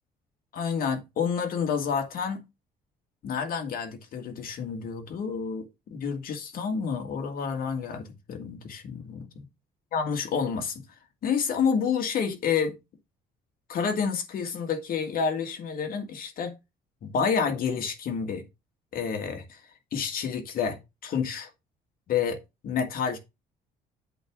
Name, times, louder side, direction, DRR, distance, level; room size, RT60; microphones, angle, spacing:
voice 1, 0.5-2.4 3.2-9.5 9.9-10.8 11.2-12.7 13.7-16.5 17.0-18.4 18.9-19.6 19.9-21.5 22.1-23.2, left 6 dB, 60° left, 1.9 m, -29 dB
8.1 x 3.6 x 6.3 m
cardioid pair, 110°, 17 cm